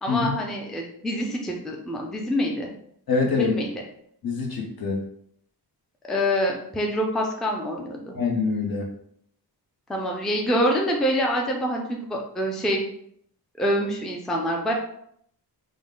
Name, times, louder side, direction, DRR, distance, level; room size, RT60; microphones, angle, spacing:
voice 1, 0.0-2.7 3.4-3.8 6.1-8.1 9.9-12.9 13.6-14.7, equal, ahead, 0 dB, 0.4 m, -26 dB
voice 2, 3.1-3.5 4.2-5.0 8.1-8.9, left 4 dB, 60° left, 0 dB, 1.0 m, -24 dB
5.1 x 2.2 x 3.7 m, 0.69 s
wide cardioid pair, 170°, 40 cm